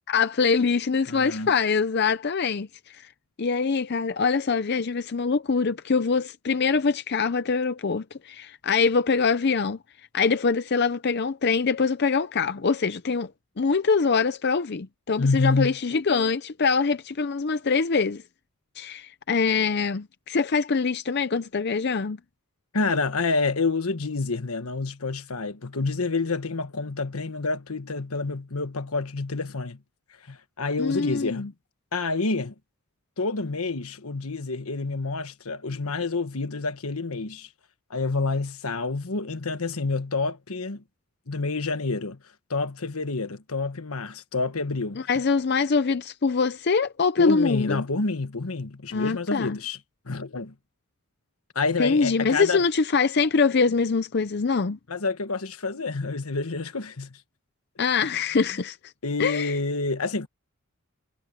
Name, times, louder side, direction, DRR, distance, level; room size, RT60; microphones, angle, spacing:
voice 1, 0.1-3.1 3.4-9.8 10.1-13.3 13.6-18.2 18.8-22.2 30.8-31.5 45.0-47.8 48.9-49.6 51.8-54.8 57.8-58.9 59.2-59.6, left 5 dB, 50° left, 0.5 m, -24 dB
voice 2, 1.1-1.5 15.2-15.8 22.7-29.8 30.3-31.5 31.9-32.5 33.2-37.5 37.9-40.8 41.3-42.2 42.5-45.0 47.2-49.8 50.1-50.5 51.5-52.6 54.9-57.2 59.0-60.3, left 3 dB, 80° left, 1.3 m, -28 dB
head